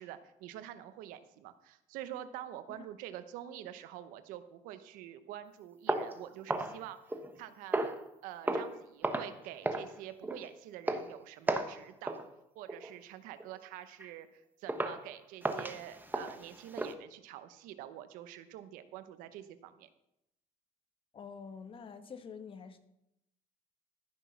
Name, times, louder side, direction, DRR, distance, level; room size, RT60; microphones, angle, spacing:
voice 1, 0.0-7.0 7.3-12.2 12.5-19.9, right 12 dB, 90° right, 0.9 m, -46 dB
sound 1, 5.9-7.4 7.7-8.1 8.4-8.8 9.0-9.4 9.6-9.9 10.2-10.5 10.9-11.1 11.5-11.8 12.1-12.3 12.7-12.9 13.4-13.5 14.0-14.1 14.7-15.0 15.4-16.9, right 2 dB, 15° right, 1.2 m, -34 dB
voice 2, 21.1-22.8, left 6 dB, 40° left, 1.3 m, -47 dB
14.5 x 6.3 x 5.7 m
cardioid pair, 100°, 14 cm